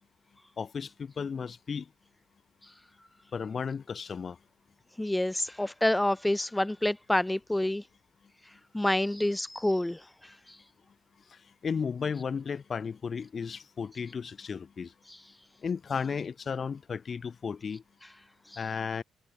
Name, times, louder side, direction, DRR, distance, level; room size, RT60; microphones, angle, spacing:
voice 1, 0.6-1.9 3.3-4.4 11.3-14.9 15.6-17.8 18.6-19.0, left 6 dB, 45° left, 5.1 m, -34 dB
voice 2, 5.0-7.8 8.7-10.6 15.1-15.2 18.5-18.6, left 1 dB, 10° left, 2.7 m, -28 dB
cardioid pair, 90°, 0 cm